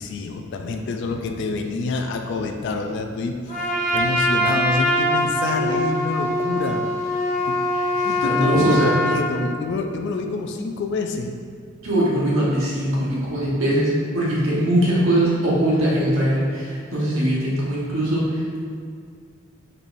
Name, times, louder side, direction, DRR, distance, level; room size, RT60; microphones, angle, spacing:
voice 1, 0.0-6.9 7.5-7.6 8.0-11.4, left 3 dB, 60° left, 4 dB, 0.3 m, -27 dB
Trumpet, 3.5-9.3, equal, 35° left, 1.1 m, -22 dB
voice 2, 8.2-9.0 11.8-18.4, right 1 dB, 90° right, -6 dB, 1.2 m, -21 dB
4.5 x 4.1 x 2.6 m, 2.2 s
head